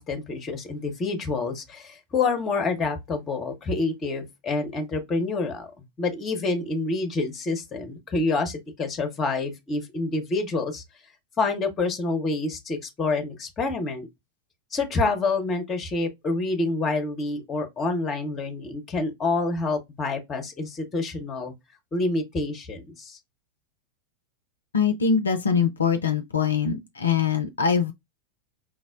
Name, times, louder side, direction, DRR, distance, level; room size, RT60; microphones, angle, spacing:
voice 1, 0.0-5.7 6.0-10.8 11.4-14.1 14.7-21.5 21.9-23.2, left 3 dB, 25° left, 0.8 m, -27 dB
voice 2, 24.7-27.9, left 6 dB, 75° left, 0.4 m, -23 dB
4.8 x 2.0 x 2.4 m
figure-of-eight pair, 90°, 0 cm